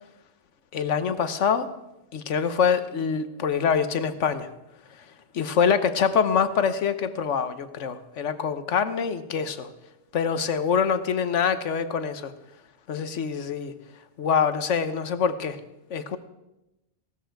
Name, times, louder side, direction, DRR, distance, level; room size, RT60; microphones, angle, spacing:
voice 1, 0.7-1.7 2.1-4.5 5.3-9.7 10.1-12.3 12.9-13.7 14.2-15.6 15.9-16.2, left 6 dB, 80° left, 12 dB, 1.3 m, -25 dB
16.5 x 13.0 x 4.6 m, 0.94 s
omnidirectional pair, 1.2 m